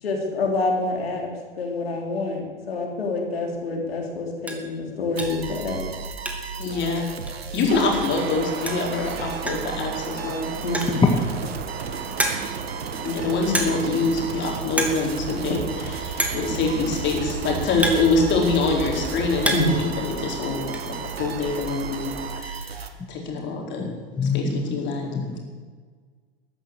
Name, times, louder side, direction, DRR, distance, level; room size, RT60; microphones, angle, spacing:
voice 1, 0.0-1.3 1.6-5.8 10.6-11.0 19.5-19.7, left 2 dB, 75° left, 1 dB, 3.3 m, -27 dB
sound 1, 3.5-3.6 4.0-4.1 4.4-4.7 5.2-5.5 5.8-6.6 6.9-7.0 7.3-7.4 8.4-8.5 8.7-9.0 9.5-9.8 10.6-11.1 11.6-11.7 12.2-12.7 13.5-14.0 14.2-14.4 14.7-15.0 15.3-15.4 16.2-16.5 17.3-18.6 19.1-19.8 20.1-20.8, right 1 dB, 5° right, 2.5 m, -28 dB
sound 2, 5.1-22.9, right 5 dB, 80° right, 1.5 m, -35 dB
voice 2, 6.6-7.1 7.5-11.3 13.0-23.9 24.2-25.1, left 3 dB, 35° left, 1 dB, 4.4 m, -25 dB
sound 3, 7.7-22.4, right 7 dB, 30° right, 1.6 m, -35 dB
voice 3, 24.2-25.4, left 4 dB, 15° left, 3 dB, 1.8 m, -27 dB
13.5 x 11.0 x 8.1 m, 1.5 s
figure-of-eight pair, 85°, 31 cm